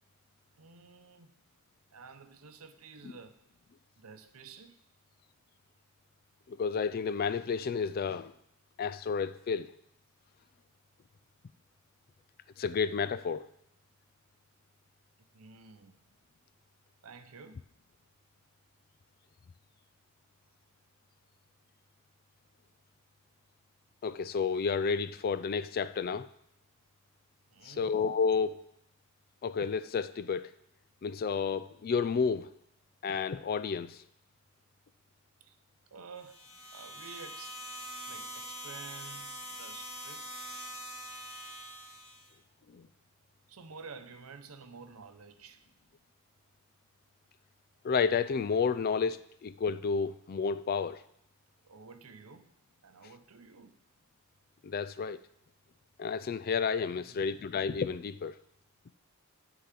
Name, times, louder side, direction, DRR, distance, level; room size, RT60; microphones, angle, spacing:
voice 1, 0.6-1.4 1.9-3.4 4.0-4.8 15.3-16.0 17.0-17.6 27.5-27.9 35.4-35.5 35.9-36.4 36.7-40.2 43.5-45.6 51.6-52.5 52.8-53.8 56.8-57.2, right 5 dB, 75° right, 0.8 m, -51 dB
voice 2, 6.5-8.3 8.8-9.7 12.6-13.5 24.0-26.3 27.6-28.6 29.4-30.5 31.0-32.5 33.0-34.0 42.7-42.9 47.8-51.0 54.6-55.2 56.0-58.3, left 5 dB, 45° left, 0.3 m, -31 dB
sound 1, 36.1-42.3, equal, 5° left, 3.0 m, -44 dB
10.0 x 3.9 x 7.4 m
head